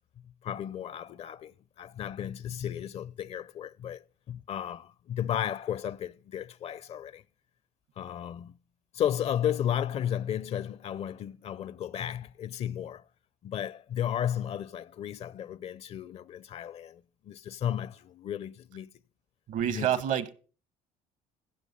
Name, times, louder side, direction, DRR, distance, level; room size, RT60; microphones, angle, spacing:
voice 1, 0.2-7.2 8.0-8.6 8.9-13.0 13.4-18.9 19.7-19.9, left 10 dB, 45° left, 0.5 m, -34 dB
voice 2, 19.5-20.3, right 10 dB, 65° right, 1.2 m, -28 dB
15.0 x 7.9 x 5.4 m
cardioid pair, 105°, 14 cm